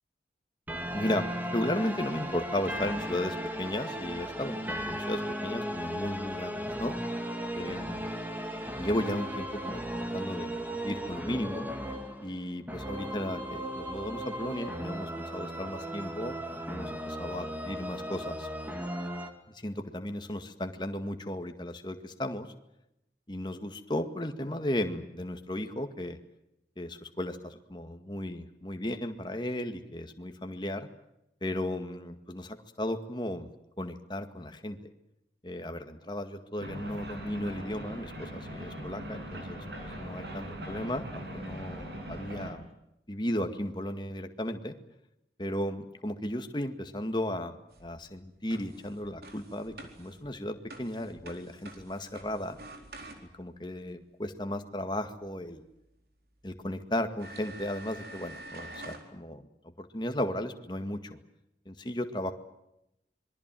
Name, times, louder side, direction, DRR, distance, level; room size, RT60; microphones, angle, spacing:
sound 1, 0.7-19.3, equal, 10° right, 2.3 m, -36 dB
voice 1, 0.9-6.9 7.5-8.0 8.8-11.7 12.2-18.5 19.6-22.5 23.3-26.2 26.8-30.9 31.4-33.5 33.8-34.8 35.4-42.7 43.1-44.7 45.4-52.6 53.3-55.6 56.4-59.5 59.8-61.2 61.7-62.3, left 1 dB, 25° left, 7 dB, 1.9 m, -35 dB
sound 2, 36.6-42.5, right 1 dB, 80° right, 7.8 m, -41 dB
sound 3, 47.7-53.6 55.7-55.8 56.5-56.6 57.2-59.1, right 2 dB, 60° right, 4.3 m, -48 dB
26.5 x 22.5 x 7.7 m, 0.85 s
head